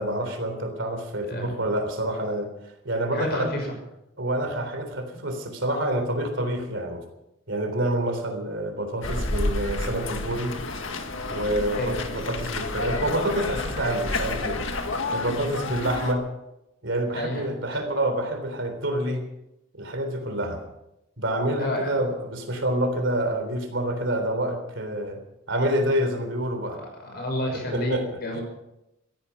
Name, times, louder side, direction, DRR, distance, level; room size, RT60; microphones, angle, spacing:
voice 1, 0.0-2.5 2.8-3.5 4.2-7.0 7.5-10.5 11.3-14.6 15.1-16.2 16.8-19.2 19.8-20.6 21.2-25.2 25.5-26.8 27.5-28.4, right 1 dB, 60° right, 6 dB, 3.6 m, -27 dB
voice 2, 3.1-3.7 11.7-11.9 17.1-17.5 21.6-22.0 27.0-28.4, left 1 dB, 50° left, 2 dB, 6.0 m, -30 dB
sound 1, 9.0-16.1, left 2 dB, 70° left, 1.8 m, -30 dB
17.0 x 14.0 x 6.0 m, 0.88 s
head